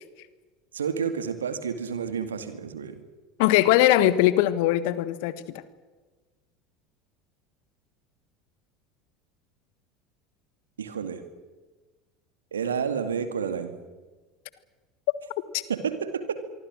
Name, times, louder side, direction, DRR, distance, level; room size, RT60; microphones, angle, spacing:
voice 1, 0.7-3.0 10.8-11.2 12.5-13.8 15.7-16.4, right 6 dB, 75° right, 9 dB, 2.3 m, -30 dB
voice 2, 3.4-5.4 15.5-15.6, left 14 dB, 60° left, 15 dB, 1.4 m, -20 dB
25.0 x 24.0 x 6.3 m, 1.3 s
figure-of-eight pair, 70°, 0 cm